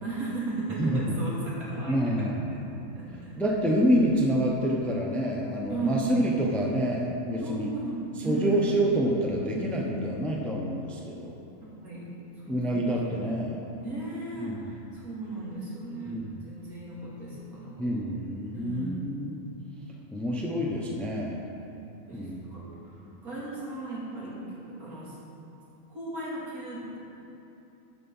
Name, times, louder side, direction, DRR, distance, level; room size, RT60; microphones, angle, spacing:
voice 1, 0.0-2.6 2.9-3.4 5.7-6.1 7.4-8.6 11.8-12.9 13.8-17.9 18.5-19.0 22.0-22.9 23.2-25.2 25.9-27.0, right 2 dB, 75° right, -7 dB, 3.0 m, -36 dB
voice 2, 1.9-2.5 3.4-7.7 8.2-11.3 12.5-13.6 14.4-14.7 16.1-16.3 17.8-19.4 20.1-21.4 22.1-22.4 23.0-23.1, equal, ahead, -1 dB, 0.8 m, -27 dB
13.0 x 5.8 x 5.6 m, 2.9 s
omnidirectional pair, 1.5 m